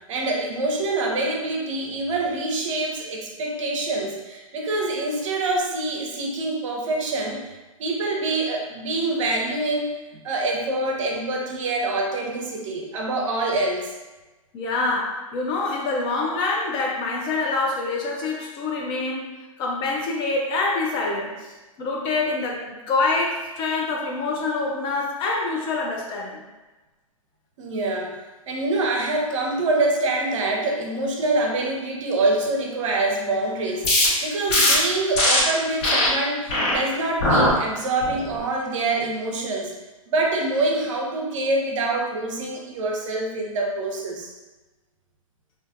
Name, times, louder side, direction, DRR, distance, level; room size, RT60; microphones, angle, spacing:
voice 1, 0.1-7.5 7.8-13.9 27.6-28.2 28.5-39.7 40.1-44.3, right 2 dB, 60° right, 0 dB, 0.6 m, -25 dB
voice 2, 14.5-19.3 19.6-21.5 21.8-26.4, left 3 dB, 25° left, -1 dB, 0.4 m, -26 dB
sound 1, 33.8-34.1 34.5-34.7 35.1-35.4 35.8-36.1 36.5-36.7 37.2-37.5 38.0-38.4, left 1 dB, 50° left, 1.1 m, -19 dB
2.4 x 2.4 x 2.5 m, 1.1 s
hypercardioid pair, 120°, 18 cm